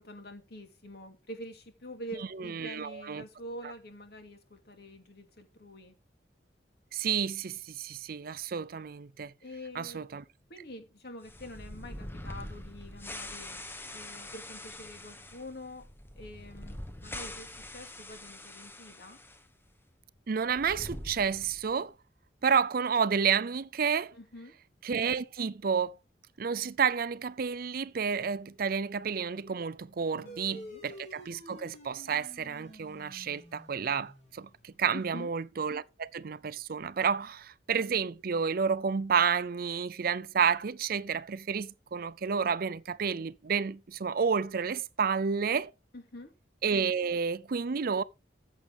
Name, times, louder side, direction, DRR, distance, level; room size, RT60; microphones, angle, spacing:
voice 1, 0.0-5.9 9.4-10.1 10.5-13.6 13.9-15.9 16.2-19.2 24.1-24.5 30.1-30.8 34.9-35.3 45.9-46.3, equal, 65° left, 2.5 m, -46 dB
voice 2, 2.4-3.2 6.9-9.3 9.7-10.2 20.3-21.9 22.4-24.1 24.8-26.0 26.4-45.7 46.6-48.0, right 6 dB, 55° right, 0.5 m, -30 dB
sound 1, 11.2-19.4 19.7-19.8 20.4-21.8, left 1 dB, 15° left, 1.1 m, -44 dB
sound 2, 30.3-35.1, equal, 40° left, 3.0 m, -50 dB
14.0 x 7.3 x 3.5 m
head